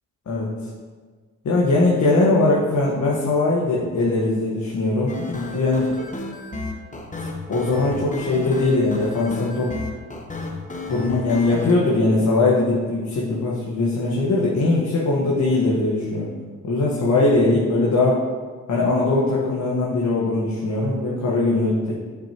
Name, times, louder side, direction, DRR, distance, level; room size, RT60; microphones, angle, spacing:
voice 1, 1.4-5.9 7.5-9.7 10.9-16.3 16.6-18.2 18.7-21.9, left 2 dB, 60° left, -5 dB, 1.5 m, -20 dB
sound 1, 5.1-11.7, left 2 dB, 25° left, 1.1 m, -33 dB
8.5 x 5.8 x 3.0 m, 1.5 s
supercardioid pair, 55°, 32 cm